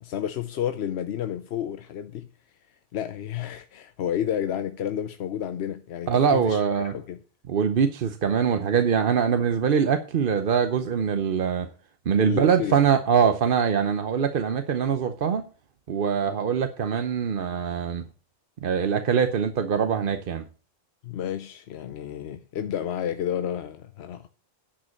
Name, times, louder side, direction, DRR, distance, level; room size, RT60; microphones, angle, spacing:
voice 1, 0.0-2.3 2.9-7.2 12.2-12.8 21.0-24.3, left 10 dB, 90° left, 0.9 m, -31 dB
voice 2, 6.1-6.9 7.5-11.7 12.1-15.4 15.9-18.0 18.6-20.5, right 7 dB, 60° right, 0.9 m, -23 dB
10.0 x 5.2 x 7.0 m
omnidirectional pair, 1.1 m